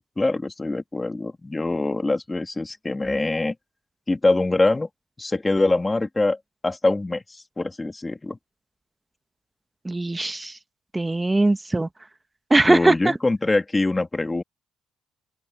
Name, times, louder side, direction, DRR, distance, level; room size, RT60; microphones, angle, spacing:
voice 1, 0.0-3.5 4.1-4.9 5.2-6.4 6.6-8.4 12.6-14.4, left 2 dB, 20° left, 2.6 m, -24 dB
voice 2, 9.8-10.5 10.9-11.9 12.5-13.1, right 2 dB, 15° right, 1.1 m, -20 dB
open air
cardioid pair, 90°, 0 cm